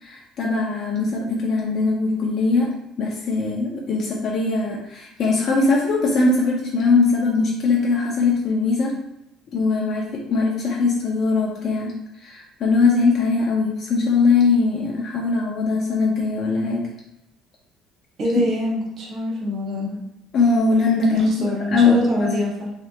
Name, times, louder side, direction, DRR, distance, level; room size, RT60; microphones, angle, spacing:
voice 1, 0.0-2.7 3.0-8.9 9.5-16.9 20.3-21.4 21.7-22.4, left 4 dB, 40° left, -2 dB, 0.5 m, -21 dB
voice 2, 18.2-20.0 21.1-22.7, left 1 dB, 35° right, -2 dB, 0.7 m, -25 dB
3.2 x 2.8 x 3.4 m, 0.84 s
cardioid pair, 170°, 0 cm